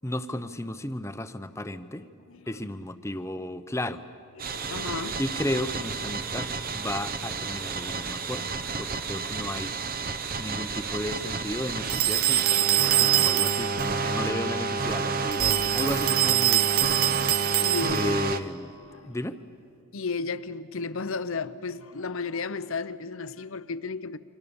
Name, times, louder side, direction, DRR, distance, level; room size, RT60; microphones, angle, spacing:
voice 1, 0.0-2.0 2.5-4.0 5.2-9.7 10.4-16.7 17.9-18.7 19.1-19.4, left 1 dB, 15° left, 0.8 m, -34 dB
voice 2, 2.0-2.5 4.3-5.2 8.8-8.9 17.6-18.2 18.8-19.2 19.9-24.2, left 4 dB, 65° left, 0.8 m, -34 dB
sound 1, 4.4-18.4, right 4 dB, 40° right, 0.9 m, -30 dB
sound 2, 11.9-13.9 15.3-18.2, right 16 dB, 70° right, 0.5 m, -24 dB
28.0 x 26.0 x 7.1 m
head